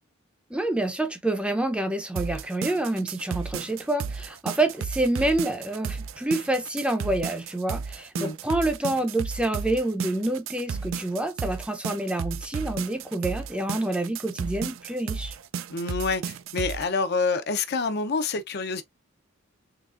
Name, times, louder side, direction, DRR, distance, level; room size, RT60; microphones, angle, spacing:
voice 1, 0.5-15.4, right 1 dB, 5° right, 0.6 m, -27 dB
sound 1, 2.2-16.9, right 6 dB, 70° right, 0.4 m, -33 dB
voice 2, 15.7-18.8, left 4 dB, 55° left, 0.6 m, -27 dB
4.0 x 3.3 x 2.4 m
head